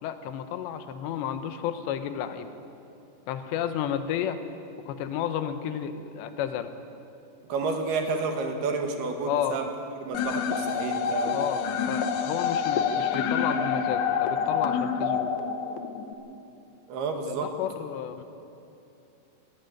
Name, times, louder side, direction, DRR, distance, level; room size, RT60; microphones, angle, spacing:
voice 1, 0.0-2.5 3.3-4.4 4.9-6.7 9.2-9.6 11.3-15.3 17.3-18.2, left 9 dB, 90° left, 9 dB, 3.2 m, -32 dB
voice 2, 7.5-9.6 10.0-11.4 16.9-17.5, right 4 dB, 70° right, 4 dB, 3.4 m, -30 dB
sound 1, 10.1-16.1, left 7 dB, 70° left, 1.9 m, -27 dB
17.5 x 17.0 x 9.1 m, 2.7 s
omnidirectional pair, 5.0 m